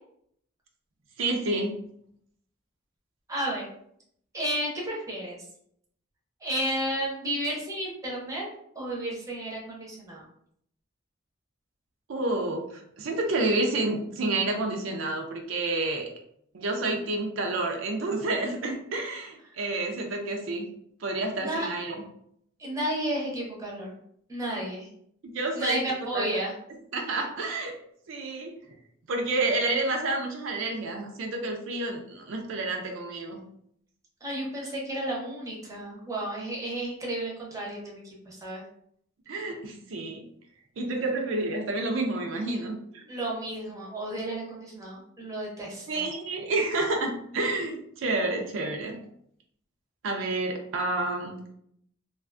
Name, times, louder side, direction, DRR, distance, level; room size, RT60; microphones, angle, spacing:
voice 1, 1.2-1.8 12.1-16.1 16.5-20.7 21.0-22.0 25.2-25.8 26.1-26.3 26.9-27.8 28.1-28.5 29.1-33.4 39.3-40.2 40.8-43.0 45.9-49.0 50.0-51.4, right 2 dB, 75° right, 2 dB, 0.4 m, -29 dB
voice 2, 3.3-3.7 4.3-5.4 6.4-8.5 8.8-10.2 21.3-21.7 22.6-23.9 24.3-24.9 25.5-26.5 34.2-38.6 43.1-46.0, right 1 dB, 15° right, -3 dB, 0.6 m, -32 dB
2.4 x 2.2 x 2.4 m, 0.70 s
head